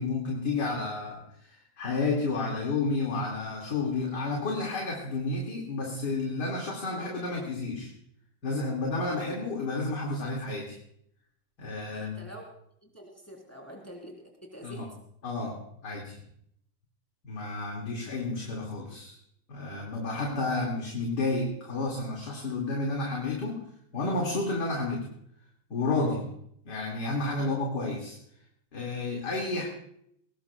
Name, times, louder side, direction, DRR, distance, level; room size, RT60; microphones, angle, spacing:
voice 1, 0.0-7.9 8.4-10.8 11.6-12.3 14.6-14.9 15.2-16.2 17.2-19.2 19.5-23.6 23.9-25.1 25.7-26.3 26.6-28.2 28.7-29.7, left 3 dB, 60° left, -1 dB, 2.8 m, -31 dB
voice 2, 11.9-12.5 12.8-14.9 27.4-27.5 29.5-29.7, equal, 10° left, -1 dB, 3.6 m, -46 dB
22.0 x 19.0 x 2.3 m, 0.72 s
omnidirectional pair, 2.0 m